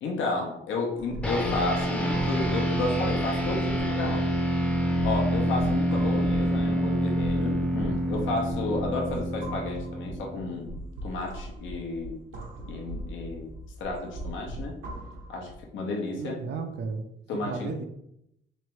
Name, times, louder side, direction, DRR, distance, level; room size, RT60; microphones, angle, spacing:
voice 1, 0.0-4.3 5.0-10.7 11.0-12.2 12.7-13.5 13.8-14.7 15.3-16.4 17.3-17.7, left 3 dB, 75° left, 0 dB, 0.8 m, -32 dB
sound 1, 0.9-15.7, right 1 dB, 75° right, 0.9 m, -39 dB
sound 2, 1.2-10.9, equal, 5° left, 0.6 m, -27 dB
voice 2, 16.1-17.0 17.4-17.8, right 4 dB, 60° right, 5 dB, 0.5 m, -34 dB
3.4 x 3.2 x 3.1 m, 0.79 s
cardioid pair, 90°, 20 cm